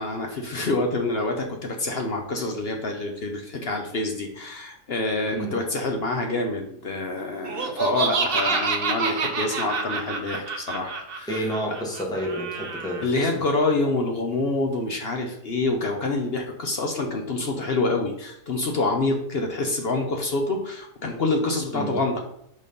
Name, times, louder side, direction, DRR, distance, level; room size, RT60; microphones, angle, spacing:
voice 1, 0.0-11.4 12.1-12.2 13.0-22.2, left 2 dB, 50° left, 3 dB, 0.7 m, -27 dB
Laughter, 7.4-13.0, right 4 dB, 50° right, 0.8 m, -28 dB
voice 2, 11.3-13.3 21.7-22.0, right 1 dB, 5° left, -2 dB, 1.2 m, -30 dB
5.2 x 4.1 x 5.2 m, 0.73 s
omnidirectional pair, 1.7 m